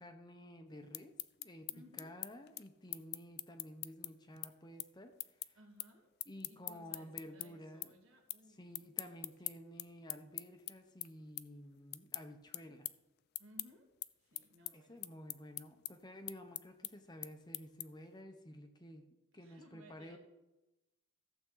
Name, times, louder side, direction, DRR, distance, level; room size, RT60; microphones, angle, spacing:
voice 1, 0.0-1.7 2.0-5.6 6.3-8.0 8.6-12.9 14.7-19.1 19.3-20.2, equal, 20° left, 6 dB, 0.7 m, -52 dB
sound 1, 0.7-7.5 7.8-8.4 8.7-18.1, left 17 dB, 50° left, 0.3 m, -44 dB
voice 2, 1.7-2.2 5.5-6.1 6.5-9.3 13.4-13.9 14.2-15.0 18.9-20.2, equal, 70° right, 2 dB, 1.9 m, -62 dB
14.5 x 7.3 x 3.9 m, 1.0 s
head